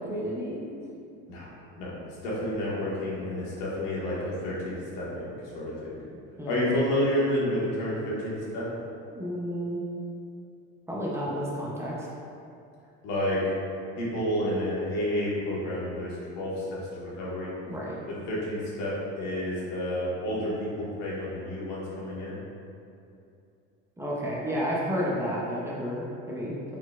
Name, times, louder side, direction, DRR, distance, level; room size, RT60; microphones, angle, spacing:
voice 1, 0.1-0.8 6.4-6.7 9.1-9.8 10.9-12.1 17.7-18.0 24.0-26.5, equal, 10° right, -6 dB, 0.4 m, -31 dB
voice 2, 1.7-6.0 6.5-8.7 13.0-13.4 14.0-17.5 18.3-22.4, left 1 dB, 85° left, -6 dB, 1.3 m, -30 dB
4.1 x 4.1 x 2.3 m, 2.6 s
cardioid pair, 145°, 29 cm